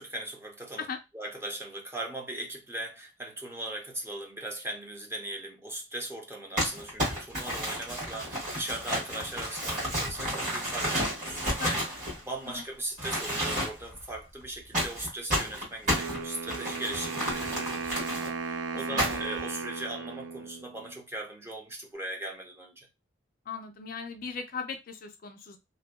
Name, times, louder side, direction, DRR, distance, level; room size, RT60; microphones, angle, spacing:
voice 1, 0.0-0.9 1.1-12.0 12.3-22.9, right 1 dB, 15° right, 0.5 m, -39 dB
Crumpling crinkling, 6.6-12.6 13.0-14.0 14.7-18.3 19.0-19.4, equal, 45° right, 1.4 m, -31 dB
Wind instrument woodwind instrument, 15.9-20.9, right 5 dB, 70° right, 0.3 m, -36 dB
voice 2, 23.5-25.6, left 5 dB, 50° left, 0.3 m, -38 dB
2.6 x 2.2 x 2.2 m
head